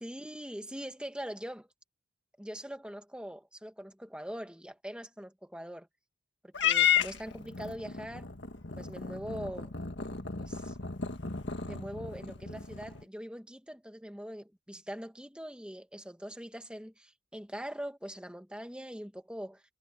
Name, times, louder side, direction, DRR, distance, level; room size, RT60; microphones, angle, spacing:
voice 1, 0.0-1.7 2.4-5.9 6.4-8.3 8.8-9.7 10.4-10.8 11.6-19.6, equal, 5° right, 1.5 m, -42 dB
Purr / Meow, 6.5-13.0, left 9 dB, 55° left, 1.9 m, -33 dB
head